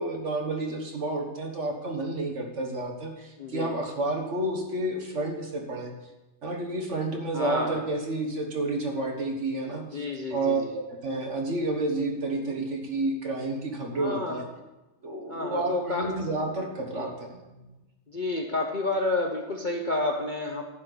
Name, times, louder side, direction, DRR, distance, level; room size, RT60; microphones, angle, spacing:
voice 1, 0.0-5.9 6.4-10.0 10.3-10.6 10.9-14.4 15.0-17.6, right 2 dB, 50° right, 1 dB, 1.7 m, -30 dB
voice 2, 3.4-3.7 7.3-7.8 9.9-10.7 13.9-14.4 15.3-16.1 16.9-17.1 18.1-20.6, left 2 dB, 40° left, 1 dB, 0.7 m, -30 dB
11.0 x 4.4 x 8.0 m, 1.1 s
omnidirectional pair, 1.7 m